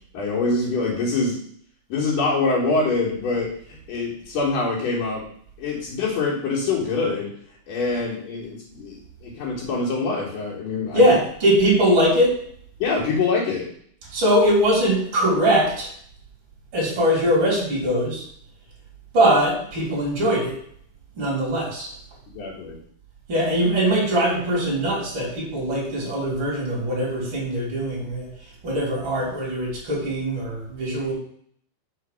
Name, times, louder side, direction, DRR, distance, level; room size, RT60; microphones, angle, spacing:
voice 1, 0.1-1.4 1.9-5.2 5.6-7.3 7.7-11.0 12.8-13.7 22.3-22.8, left 3 dB, 55° left, -8 dB, 3.0 m, -25 dB
voice 2, 10.9-12.3 14.1-15.9 16.7-18.2 19.1-20.6 21.1-22.0 23.3-31.1, equal, 30° right, -3 dB, 3.3 m, -21 dB
6.8 x 4.5 x 6.7 m, 0.62 s
omnidirectional pair, 5.6 m